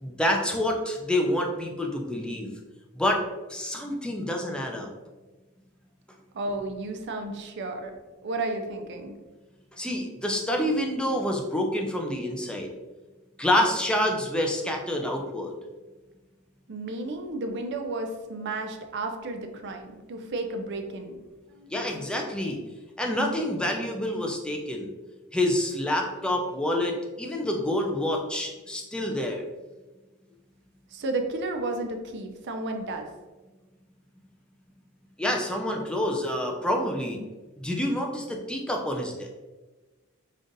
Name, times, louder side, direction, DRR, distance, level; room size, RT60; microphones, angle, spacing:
voice 1, 0.0-2.5 2.9-3.2 3.5-4.9 9.8-12.7 13.4-15.6 21.7-22.6 23.0-24.9 25.3-29.4 35.2-37.2 37.6-39.3, left 1 dB, 5° left, 1 dB, 0.4 m, -27 dB
voice 2, 6.3-7.9 8.2-9.1 16.7-21.2 21.5-21.7 30.9-33.1, right 2 dB, 55° right, 5 dB, 0.5 m, -32 dB
5.2 x 2.4 x 2.6 m, 1.2 s
head